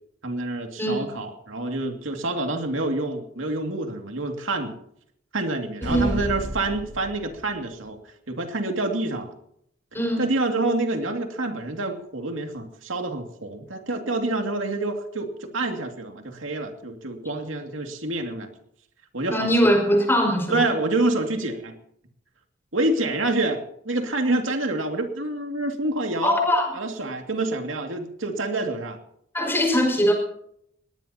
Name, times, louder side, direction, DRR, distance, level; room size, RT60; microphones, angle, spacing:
voice 1, 0.2-4.8 5.3-8.0 8.3-9.3 10.2-18.5 19.1-19.7 20.5-21.7 22.7-26.4 26.7-29.0, right 2 dB, 85° right, 4 dB, 2.4 m, -27 dB
sound 1, 5.8-7.5, right 1 dB, 65° right, 6.1 m, -31 dB
voice 2, 9.9-10.3 19.3-20.7 26.2-26.7 29.3-30.1, equal, 10° left, 2 dB, 5.3 m, -21 dB
21.0 x 18.5 x 2.9 m, 0.71 s
head